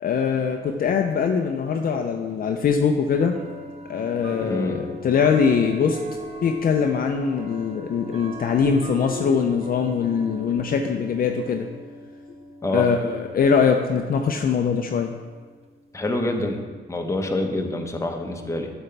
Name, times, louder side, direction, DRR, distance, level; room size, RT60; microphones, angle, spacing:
voice 1, 0.0-3.4 3.9-6.0 6.4-11.7 12.7-15.1, left 6 dB, 45° left, 4 dB, 0.5 m, -22 dB
sound 1, 1.1-1.2 2.3-2.4 3.3-16.6, equal, 30° right, 0.8 m, -39 dB
voice 2, 4.4-4.8 12.6-12.9 15.9-16.6 16.9-18.7, left 2 dB, 15° left, 3 dB, 0.9 m, -26 dB
8.3 x 6.8 x 3.4 m, 1.5 s
cardioid pair, 90°, 20 cm